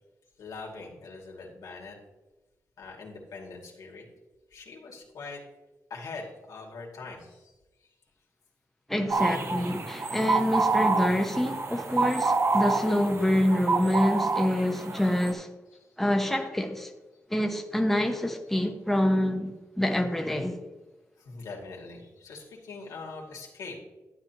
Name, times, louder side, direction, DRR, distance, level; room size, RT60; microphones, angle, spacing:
voice 1, 0.4-2.0 2.8-4.1 4.5-5.4 5.9-7.5 15.7-15.9 21.2-23.8, left 4 dB, 90° left, 2.4 m, -42 dB
voice 2, 8.9-15.5 16.0-16.9 17.3-20.6, left 1 dB, 5° left, 0.9 m, -26 dB
sound 1, 9.1-15.3, right 4 dB, 45° right, 1.1 m, -28 dB
12.0 x 8.9 x 2.9 m
cardioid pair, 85°, 6 cm